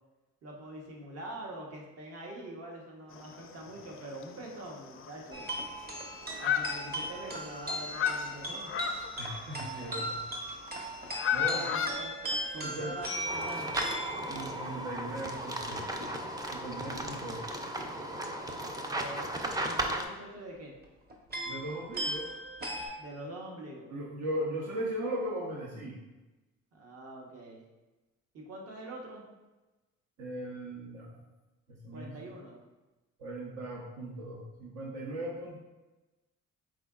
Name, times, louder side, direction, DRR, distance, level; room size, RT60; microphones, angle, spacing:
voice 1, 0.4-5.4 6.4-8.7 11.4-12.2 12.5-13.8 18.9-20.7 23.0-23.9 26.7-27.6 28.3-29.3 31.9-32.6, right 1 dB, 55° right, -1 dB, 1.0 m, -44 dB
sound 1, 3.1-3.8 4.2-4.3 4.6-4.7 5.0-5.9 6.3-7.4 7.6-10.2 10.9-11.9, left 8 dB, 45° left, 0.4 m, -33 dB
sound 2, 5.3-15.1 15.6-16.1 16.9-17.1 17.5-17.8 19.2-19.7 20.8-20.9 21.1-22.9, right 1 dB, 30° right, 0.9 m, -38 dB
voice 2, 9.2-10.2 11.3-11.8 12.5-12.9 14.3-15.9 16.5-17.5 21.5-22.3 23.9-26.0 30.2-31.2 31.7-32.1 33.2-35.6, right 1 dB, 75° right, -4 dB, 0.9 m, -38 dB
sound 3, 13.3-20.0, right 1 dB, 15° right, 0.4 m, -36 dB
4.9 x 3.7 x 2.4 m, 1.1 s
cardioid pair, 90°, 30 cm